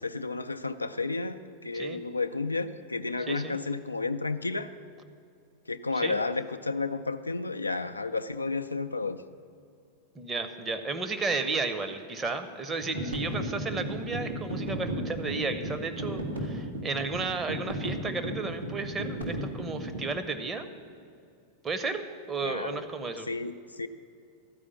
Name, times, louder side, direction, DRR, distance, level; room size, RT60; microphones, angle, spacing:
voice 1, 0.0-4.7 5.7-9.2 22.4-22.8 23.3-23.9, left 3 dB, 80° left, 9 dB, 0.4 m, -32 dB
voice 2, 3.3-3.6 5.9-6.2 10.1-20.7 21.6-22.0 22.3-23.3, right 4 dB, 20° right, 8 dB, 0.8 m, -33 dB
sound 1, 12.8-20.1, equal, 85° right, 1.6 m, -35 dB
12.5 x 4.9 x 8.4 m, 2.4 s
figure-of-eight pair, 90°, 0 cm